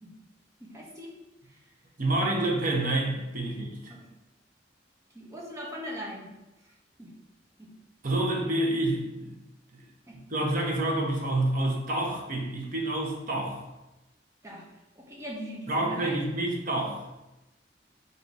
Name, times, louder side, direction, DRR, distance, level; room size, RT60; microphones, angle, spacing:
voice 1, 0.6-1.2 1.5-1.6 3.5-3.6 3.9-4.0 5.1-6.3 7.0-7.1 7.6-7.7 10.1-10.2 14.4-14.6 15.0-16.3, equal, 15° right, -3 dB, 1.0 m, -40 dB
voice 2, 2.0-3.9 8.0-9.3 9.7-9.8 10.3-13.6 15.7-17.1, right 1 dB, 50° right, 0 dB, 0.9 m, -28 dB
4.0 x 2.7 x 4.7 m, 0.98 s
head